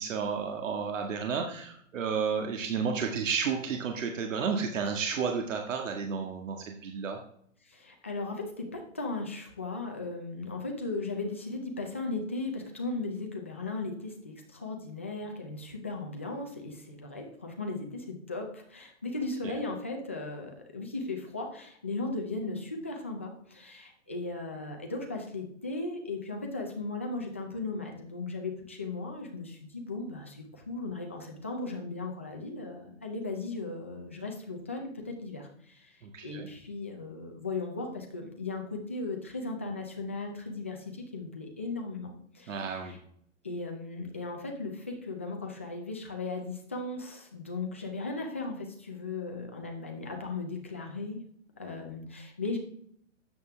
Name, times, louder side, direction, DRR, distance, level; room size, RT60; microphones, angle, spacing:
voice 1, 0.0-7.2 36.0-36.5 42.5-43.0, right 6 dB, 75° right, 3 dB, 1.8 m, -32 dB
voice 2, 7.6-43.0 43.4-51.2 51.6-52.6, left 3 dB, 10° left, 1 dB, 0.3 m, -37 dB
12.5 x 8.1 x 3.4 m, 0.65 s
hypercardioid pair, 160°, 39 cm